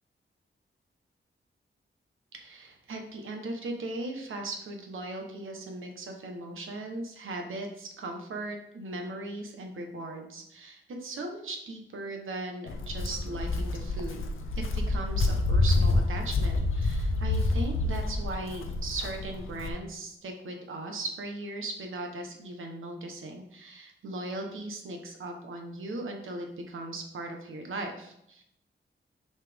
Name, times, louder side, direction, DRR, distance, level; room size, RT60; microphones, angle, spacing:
voice 1, 2.3-14.2 14.5-28.4, right 2 dB, 85° right, 3 dB, 1.3 m, -38 dB
Walk footsteps, 12.7-19.7, left 2 dB, 85° left, 0.7 m, -28 dB
6.5 x 5.7 x 3.6 m, 0.76 s
wide cardioid pair, 180°, 20 cm